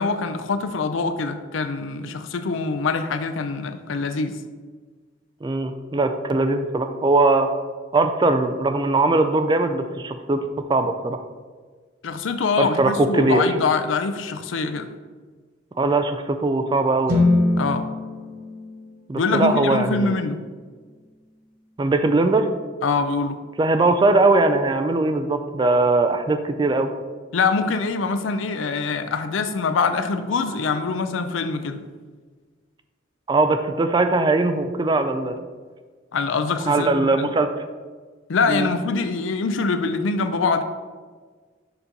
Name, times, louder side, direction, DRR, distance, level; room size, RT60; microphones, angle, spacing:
voice 1, 0.0-4.3 12.0-14.9 17.6-17.9 19.1-20.4 22.8-23.4 27.3-31.8 36.1-36.9 37.2-37.3 38.3-40.6, left 4 dB, 85° left, 9 dB, 0.5 m, -24 dB
voice 2, 5.4-7.5 7.9-10.4 10.7-11.2 12.6-13.4 15.8-17.3 19.1-20.2 21.8-22.5 23.6-26.9 33.3-35.4 36.7-37.5 38.5-38.7, right 2 dB, 25° right, 8 dB, 0.3 m, -20 dB
sound 1, 17.1-21.1, left 2 dB, 45° right, 0.9 m, -25 dB
6.7 x 2.9 x 5.2 m, 1.5 s
head